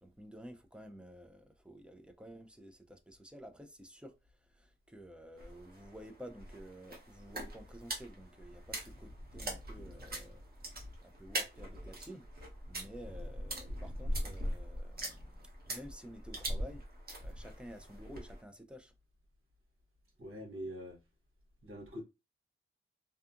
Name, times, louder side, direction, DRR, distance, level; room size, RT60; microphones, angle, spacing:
voice 1, 0.0-4.1 4.5-10.4 11.0-12.2 12.7-15.3 15.7-16.8 17.2-18.9, equal, 5° right, 0.4 m, -51 dB
sound 1, 5.4-18.4, right 1 dB, 45° right, 0.9 m, -42 dB
voice 2, 20.2-21.0 21.6-22.0, equal, 85° right, 1.0 m, -44 dB
2.7 x 2.4 x 2.4 m
wide cardioid pair, 115°, 21 cm